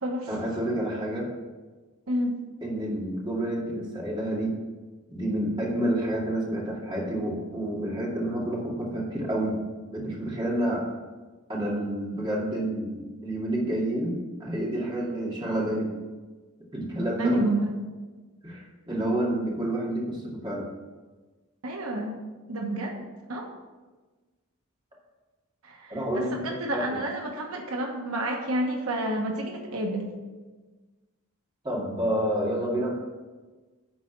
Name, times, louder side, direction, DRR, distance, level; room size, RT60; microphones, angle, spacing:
voice 1, 0.3-1.3 2.6-4.5 5.1-9.6 9.9-10.8 11.5-15.9 16.7-17.4 18.4-20.7 25.9-27.0 31.6-33.0, right 1 dB, 20° right, -4 dB, 2.4 m, -29 dB
voice 2, 2.1-2.4 17.2-17.7 21.6-22.2 22.5-23.5 25.6-30.1, right 1 dB, 80° right, 1 dB, 1.2 m, -30 dB
10.5 x 4.2 x 6.7 m, 1.3 s
head